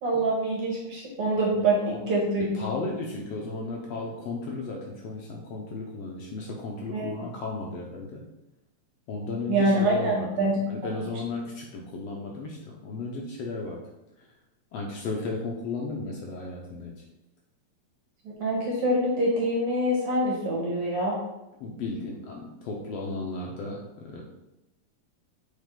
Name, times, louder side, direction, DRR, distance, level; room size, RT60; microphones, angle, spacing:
voice 1, 0.0-2.7 6.9-7.1 9.5-10.6 18.3-21.2, right 1 dB, 60° right, -3 dB, 2.1 m, -25 dB
voice 2, 1.5-2.0 2.4-8.2 9.1-10.3 10.7-13.8 14.7-16.9 21.6-24.2, left 3 dB, 70° left, -1 dB, 1.6 m, -34 dB
7.4 x 3.6 x 3.7 m, 0.91 s
omnidirectional pair, 3.4 m